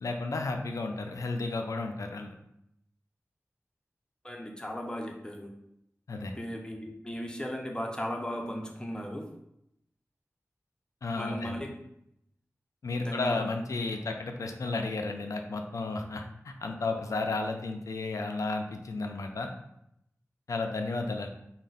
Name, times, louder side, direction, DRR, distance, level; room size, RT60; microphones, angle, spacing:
voice 1, 0.0-2.3 6.1-6.3 11.0-11.6 12.8-19.5 20.5-21.3, left 3 dB, 85° left, 4 dB, 0.4 m, -33 dB
voice 2, 4.2-5.5 6.4-9.3 11.2-11.7 13.0-13.5, equal, 15° left, 1 dB, 0.6 m, -36 dB
3.5 x 2.1 x 4.0 m, 0.79 s
wide cardioid pair, 70°, 5 cm